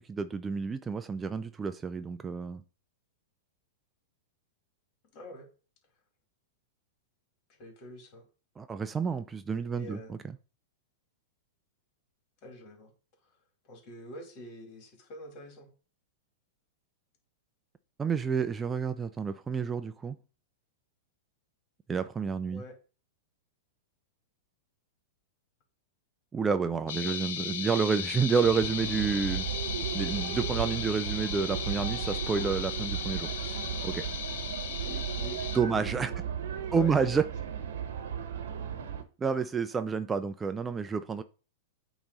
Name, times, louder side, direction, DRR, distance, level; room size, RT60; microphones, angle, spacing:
voice 1, 0.1-2.6 8.6-10.2 18.0-20.2 21.9-22.6 26.3-29.4 29.9-33.5 33.8-34.0 35.5-36.1 36.7-37.3 39.2-41.2, right 5 dB, 15° right, 0.4 m, -29 dB
voice 2, 5.1-5.5 7.6-8.3 9.7-10.1 12.4-12.9 13.7-15.7 22.5-22.7 27.0-27.7 34.9-36.2 36.6-37.2, equal, 45° left, 2.8 m, -46 dB
sound 1, 26.9-35.6, left 8 dB, 65° left, 1.0 m, -36 dB
sound 2, 28.4-39.0, right 8 dB, 75° right, 1.0 m, -35 dB
8.5 x 3.1 x 4.0 m
hypercardioid pair, 115°, 0 cm